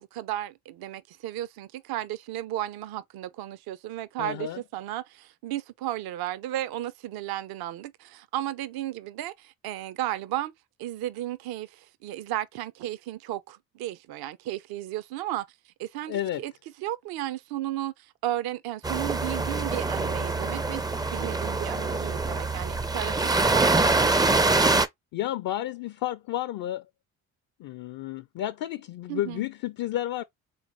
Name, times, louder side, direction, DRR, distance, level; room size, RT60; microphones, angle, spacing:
voice 1, 0.0-10.5 10.8-15.4 15.8-16.5 16.8-20.8 21.1-24.4 29.1-29.4, right 14 dB, 55° right, 0.6 m, -34 dB
voice 2, 4.2-4.6 16.1-16.4 25.1-26.9 27.6-30.2, left 13 dB, 50° left, 0.5 m, -31 dB
sound 1, 18.8-24.9, right 3 dB, 10° right, 0.4 m, -24 dB
3.6 x 3.1 x 2.9 m
hypercardioid pair, 55°, 47 cm